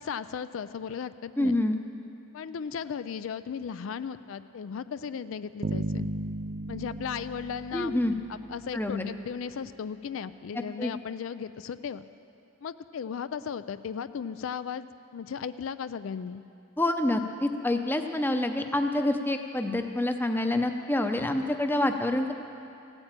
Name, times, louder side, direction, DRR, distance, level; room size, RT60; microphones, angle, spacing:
voice 1, 0.0-1.5 2.3-6.1 6.7-7.9 8.5-12.0 12.6-14.9 15.1-16.4, left 7 dB, 70° left, 13 dB, 0.4 m, -36 dB
voice 2, 1.4-1.8 7.7-8.1 8.7-9.1 10.8-10.9 16.8-22.3, left 1 dB, 10° left, 6 dB, 0.7 m, -27 dB
Bass guitar, 5.6-8.7, right 2 dB, 50° right, 0.5 m, -35 dB
15.5 x 8.9 x 8.9 m, 2.6 s
head